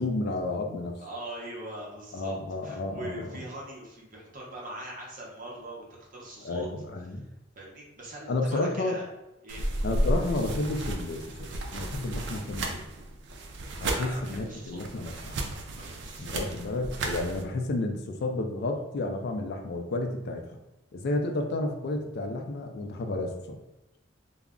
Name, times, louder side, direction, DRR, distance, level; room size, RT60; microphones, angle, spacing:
voice 1, 0.0-1.0 2.1-3.3 6.4-7.2 8.3-9.0 9.8-12.8 13.8-15.4 16.2-20.6 20.9-23.6, left 2 dB, 55° left, 4 dB, 0.4 m, -31 dB
voice 2, 1.0-2.3 2.6-5.8 6.1-6.7 7.6-9.1 9.4-9.7 13.9-14.8 15.7-16.3, right 1 dB, 45° right, -3 dB, 0.8 m, -42 dB
sound 1, 9.5-17.4, right 1 dB, 65° right, 0.4 m, -33 dB
2.3 x 2.0 x 3.5 m, 0.93 s
head